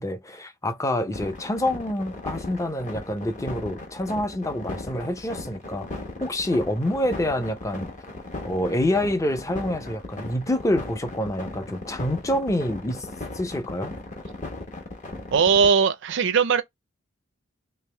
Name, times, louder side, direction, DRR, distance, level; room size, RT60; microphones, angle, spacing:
voice 1, 0.0-5.9 6.2-7.9 8.4-13.1 13.3-13.9, left 1 dB, 15° left, 0.6 m, -27 dB
sound 1, 1.1-15.7, left 2 dB, 40° left, 1.0 m, -36 dB
voice 2, 15.3-16.6, right 6 dB, 65° right, 0.5 m, -19 dB
3.3 x 2.9 x 3.3 m
head